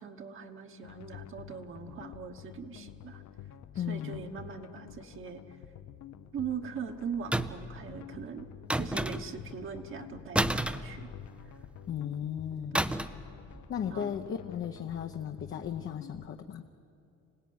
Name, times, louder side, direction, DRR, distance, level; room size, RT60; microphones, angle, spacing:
voice 1, 0.0-3.2 3.7-5.4 6.3-8.5 8.7-11.1 12.7-12.8 13.9-14.2, right 6 dB, 45° right, 5 dB, 1.3 m, -41 dB
sound 1, 0.8-16.3, left 10 dB, 75° left, 1.0 m, -49 dB
voice 2, 3.8-4.3 11.9-12.8 13.7-16.6, left 8 dB, 45° left, 5 dB, 0.9 m, -36 dB
sound 2, 7.3-7.8 8.7-9.5 10.3-11.5 12.7-13.3 13.5-13.7, right 1 dB, 5° right, 0.5 m, -30 dB
26.5 x 18.0 x 9.6 m, 2.7 s
cardioid pair, 170°, 29 cm